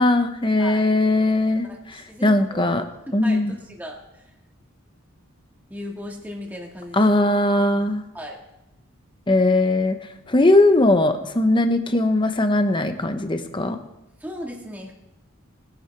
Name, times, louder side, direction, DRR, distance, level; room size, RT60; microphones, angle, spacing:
voice 1, 0.0-2.8 3.1-3.5 6.9-8.0 9.3-10.0 10.3-13.8, left 2 dB, 20° left, 8 dB, 0.9 m, -19 dB
voice 2, 1.7-2.8 3.1-4.0 5.7-7.1 8.1-8.4 14.2-14.9, equal, 10° right, -1 dB, 1.7 m, -36 dB
20.5 x 10.0 x 3.4 m, 0.91 s
head